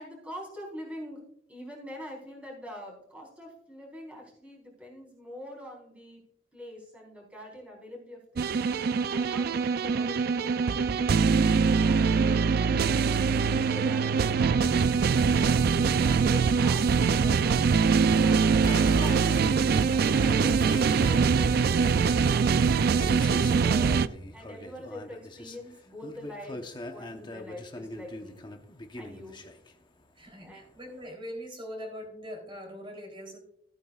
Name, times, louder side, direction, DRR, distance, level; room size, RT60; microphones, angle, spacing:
voice 1, 0.0-6.2 6.5-10.7 11.1-11.4 11.9-18.4 18.9-19.4 19.9-24.0 24.3-28.4 29.0-29.4 30.4-30.7, left 1 dB, 5° right, -2 dB, 4.1 m, -45 dB
sound 1, 8.4-24.1, right 5 dB, 55° right, 0.4 m, -23 dB
sound 2, 18.4-30.5 30.7-31.1, left 2 dB, 25° left, 0.9 m, -43 dB
voice 2, 30.2-33.4, equal, 30° right, 3 dB, 3.2 m, -41 dB
15.5 x 9.3 x 2.4 m, 0.70 s
head